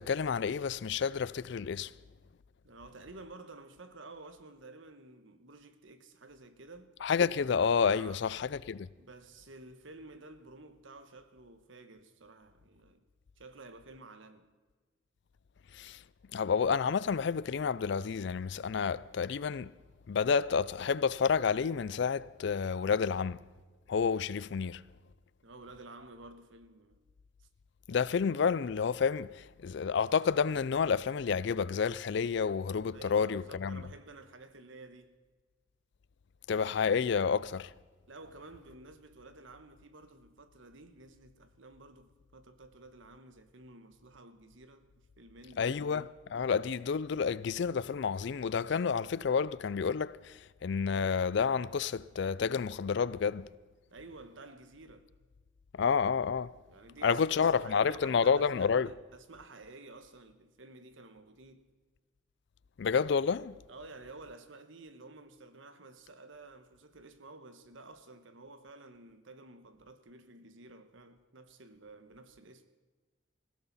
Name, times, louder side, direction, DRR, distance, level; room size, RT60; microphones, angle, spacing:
voice 1, 0.0-1.9 7.0-8.9 15.7-16.0 16.3-19.7 20.1-23.4 23.9-24.8 27.9-33.8 36.5-37.7 45.6-53.5 55.8-56.5 57.0-58.9 62.8-63.6, left 6 dB, 60° left, 0.4 m, -30 dB
voice 2, 2.6-6.9 8.0-8.2 9.0-13.0 13.4-14.5 25.4-27.0 27.4-27.5 32.9-35.2 38.1-45.8 53.9-55.1 56.7-61.7 63.7-72.7, right 2 dB, 70° right, 1.2 m, -52 dB
19.5 x 16.0 x 4.1 m
head